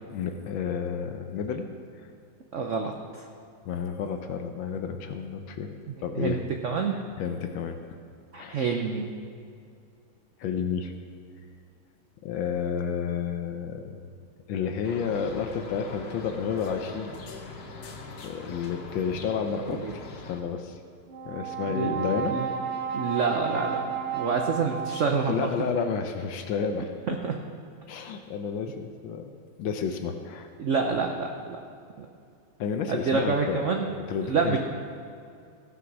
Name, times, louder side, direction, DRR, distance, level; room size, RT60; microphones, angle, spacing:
voice 1, 0.1-1.7 3.7-5.7 6.0-6.5 6.9-7.8 8.4-8.6 10.4-10.9 12.2-14.0 14.5-17.1 18.2-20.8 21.2-22.4 25.3-26.9 27.9-29.3 29.6-30.5 32.6-33.6 33.9-34.6, left 6 dB, 75° left, 6 dB, 1.4 m, -31 dB
voice 2, 2.5-3.3 5.9-7.0 8.3-9.1 19.7-19.9 21.7-22.5 22.9-25.5 27.1-27.3 30.6-31.6 32.0-32.1 32.9-34.0 34.2-34.6, right 5 dB, 80° right, 3 dB, 0.6 m, -28 dB
sound 1, 14.8-20.4, left 3 dB, 55° left, 1.4 m, -42 dB
Brass instrument, 21.1-25.5, right 7 dB, 45° right, 1.0 m, -33 dB
16.5 x 6.0 x 6.1 m, 2.4 s
omnidirectional pair, 2.3 m